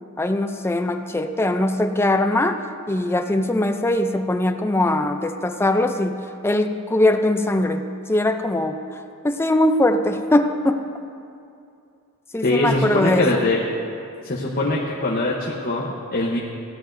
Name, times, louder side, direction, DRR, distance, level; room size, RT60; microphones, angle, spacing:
voice 1, 0.2-2.6 2.9-8.8 9.2-10.9 12.3-13.4, left 1 dB, 10° left, 7 dB, 0.4 m, -21 dB
voice 2, 12.4-13.6 14.2-16.4, left 2 dB, 45° left, -3 dB, 0.9 m, -22 dB
16.5 x 11.0 x 2.6 m, 2.5 s
head